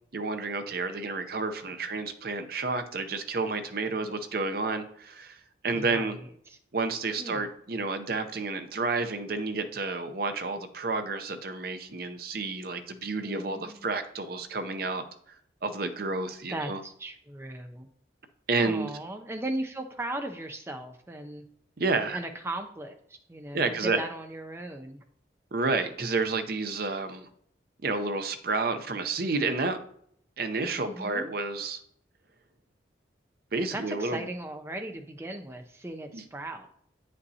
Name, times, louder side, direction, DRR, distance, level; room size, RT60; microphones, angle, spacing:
voice 1, 0.1-6.2 6.7-15.0 15.6-16.8 18.5-18.9 21.8-22.2 23.5-24.0 25.5-27.3 27.8-29.8 30.4-31.8 33.5-34.2 36.1-36.2, right 3 dB, 55° right, 8 dB, 0.7 m, -30 dB
voice 2, 5.7-6.6 7.2-7.4 13.2-13.9 16.5-17.9 18.6-21.4 22.1-23.0 23.3-25.0 30.8-31.3 33.7-36.7, right 1 dB, 15° right, 5 dB, 0.5 m, -37 dB
9.3 x 5.3 x 2.8 m, 0.68 s
head